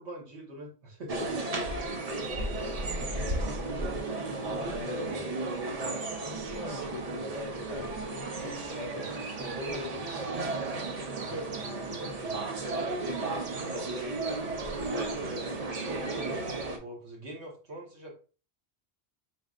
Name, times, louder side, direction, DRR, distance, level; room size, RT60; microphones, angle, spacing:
voice 1, 0.0-1.4 2.9-4.0 4.4-5.2 11.2-12.5 13.6-18.1, equal, 80° right, -1 dB, 1.5 m, -43 dB
sound 1, 1.1-16.8, right 2 dB, 45° right, 0.6 m, -34 dB
voice 2, 2.9-3.9 4.3-5.4 6.2-10.3, left 3 dB, 50° left, 2 dB, 0.4 m, -43 dB
4.3 x 3.4 x 2.4 m, 0.37 s
omnidirectional pair, 1.1 m